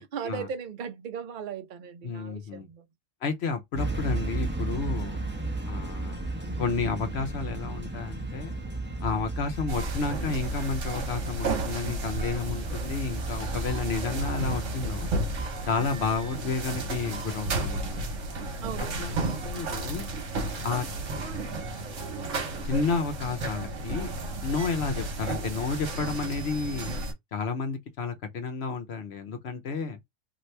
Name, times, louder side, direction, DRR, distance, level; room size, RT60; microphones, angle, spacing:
voice 1, 0.0-2.9 15.7-15.9 18.6-19.2, right 7 dB, 50° right, 0.7 m, -38 dB
voice 2, 2.0-2.7 3.2-5.2 5.6-6.2 6.6-8.6 9.0-15.1 15.7-18.0 19.0-19.2 19.4-20.1 20.6-20.9 22.6-24.1 24.4-26.9 27.3-30.0, left 4 dB, 60° left, 0.9 m, -31 dB
sound 1, 3.8-15.5, right 2 dB, 10° right, 0.5 m, -34 dB
sound 2, 9.7-27.1, right 2 dB, 75° right, 1.3 m, -33 dB
2.8 x 2.6 x 3.2 m
omnidirectional pair, 1.3 m